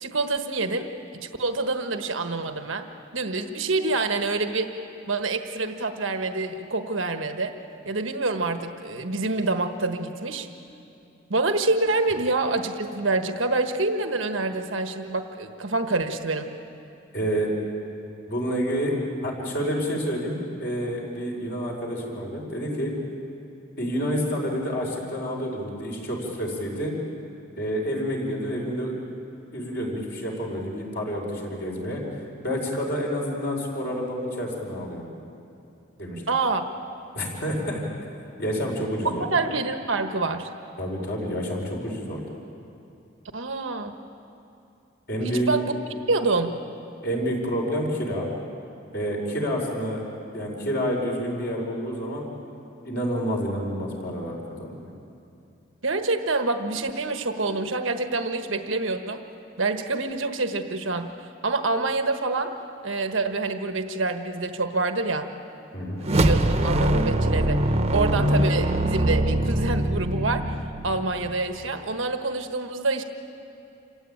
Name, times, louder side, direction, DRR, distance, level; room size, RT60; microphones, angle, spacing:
voice 1, 0.0-2.9 3.1-4.7 5.1-7.5 7.8-10.5 11.3-16.5 36.3-36.7 39.2-40.5 43.3-43.9 45.2-45.7 46.1-46.6 55.8-59.2 59.6-62.5 62.8-65.3 66.1-67.6 67.9-70.6 70.8-73.0, right 3 dB, 90° right, 7 dB, 1.3 m, -26 dB
voice 2, 17.1-17.5 18.3-18.9 19.2-22.9 23.8-27.0 27.6-29.0 29.5-32.0 32.4-35.1 36.0-36.2 37.1-37.8 38.4-39.2 40.8-42.2 45.1-45.5 47.0-48.3 48.9-50.0 50.3-52.3 52.8-54.8 65.7-66.0 68.0-68.2, equal, 55° left, -1 dB, 5.0 m, -28 dB
sound 1, 66.0-71.4, right 1 dB, 30° right, 1.0 m, -23 dB
27.5 x 16.0 x 9.1 m, 2.7 s
head